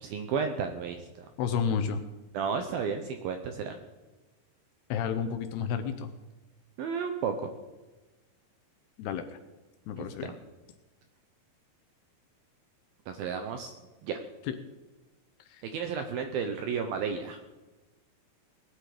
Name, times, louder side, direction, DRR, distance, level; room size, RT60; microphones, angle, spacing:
voice 1, 0.0-1.3 2.3-3.8 6.8-7.5 10.0-10.3 13.1-13.7 14.0-14.2 15.6-17.4, right 6 dB, 75° right, 6 dB, 2.2 m, -33 dB
voice 2, 1.4-2.0 4.9-6.1 9.0-9.4 9.9-10.3 14.5-14.6 15.5-15.6, left 7 dB, 75° left, 9 dB, 2.6 m, -31 dB
19.0 x 11.5 x 5.0 m, 1.1 s
omnidirectional pair, 5.2 m